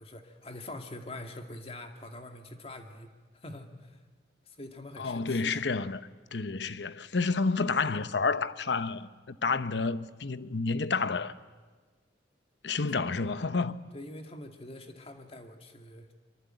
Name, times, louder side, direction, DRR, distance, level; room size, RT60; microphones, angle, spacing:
voice 1, 0.0-4.0 4.5-5.6 12.9-13.0 13.9-16.1, left 1 dB, 35° left, 2.2 m, -44 dB
voice 2, 5.0-6.0 6.3-11.3 12.6-13.8, left 4 dB, 80° left, 0.9 m, -30 dB
23.5 x 23.5 x 9.1 m
head